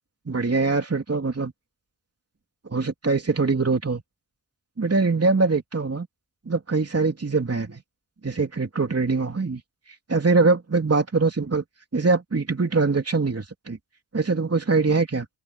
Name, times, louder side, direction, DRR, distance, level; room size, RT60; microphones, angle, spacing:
voice 1, 0.3-1.5 2.7-4.0 4.8-6.1 6.4-7.8 8.2-9.6 10.1-11.6 11.9-13.8 14.1-15.3, right 3 dB, 35° right, 3.2 m, -23 dB
open air
cardioid pair, 60°, 43 cm